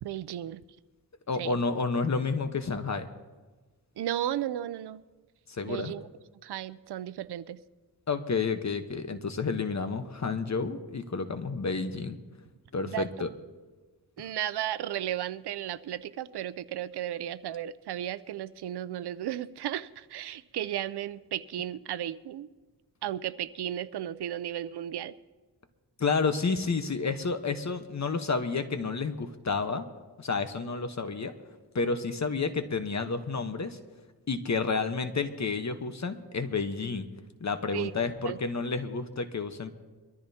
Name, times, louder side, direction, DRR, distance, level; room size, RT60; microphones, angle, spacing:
voice 1, 0.0-0.6 1.4-1.6 4.0-5.0 5.6-6.1 6.4-7.6 12.8-13.1 14.2-22.5 23.0-25.1 37.7-37.9 38.2-38.4, right 11 dB, 85° right, 15 dB, 0.6 m, -34 dB
voice 2, 1.3-3.1 5.5-5.9 8.1-12.2 12.7-13.3 26.0-29.9 30.2-31.3 31.7-33.8 34.3-37.1 37.4-39.7, left 4 dB, 45° left, 8 dB, 1.1 m, -30 dB
23.0 x 14.0 x 2.8 m, 1.3 s
cardioid pair, 80°, 38 cm